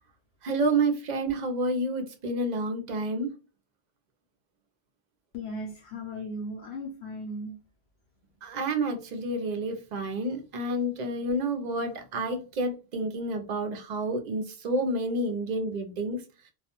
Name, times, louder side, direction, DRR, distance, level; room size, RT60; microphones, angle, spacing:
voice 1, 0.4-3.3 8.4-16.2, right 2 dB, 55° right, 0.5 m, -29 dB
voice 2, 5.3-7.6, left 1 dB, 65° left, 0.8 m, -37 dB
2.3 x 2.1 x 2.8 m
omnidirectional pair, 1.2 m